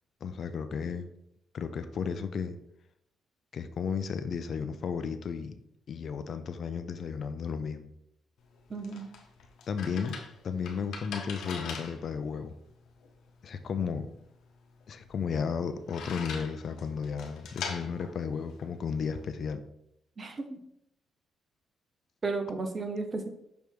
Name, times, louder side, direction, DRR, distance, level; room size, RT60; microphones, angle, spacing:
voice 1, 0.2-1.1 1.5-2.6 3.5-5.6 5.9-7.9 9.7-10.2 10.4-12.5 13.4-14.1 14.9-19.6, left 6 dB, 55° left, 10 dB, 0.5 m, -34 dB
sound 1, 8.4-19.3, left 5 dB, 75° left, 1.1 m, -43 dB
voice 2, 8.7-9.1 20.2-20.6 22.2-23.3, right 3 dB, 35° right, 6 dB, 0.9 m, -34 dB
6.3 x 3.4 x 4.6 m, 0.78 s
cardioid pair, 90°, 0 cm